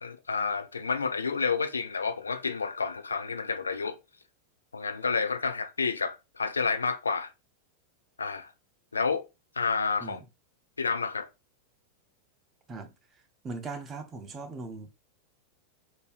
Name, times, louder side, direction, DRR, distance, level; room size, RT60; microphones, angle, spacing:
voice 1, 0.0-4.0 4.7-7.3 8.2-8.5 8.9-9.2 9.6-10.2 10.8-11.3, left 5 dB, 75° left, 0.3 m, -30 dB
voice 2, 13.4-14.9, right 3 dB, 25° right, 0.6 m, -39 dB
4.3 x 2.6 x 2.4 m
figure-of-eight pair, 90°, 0 cm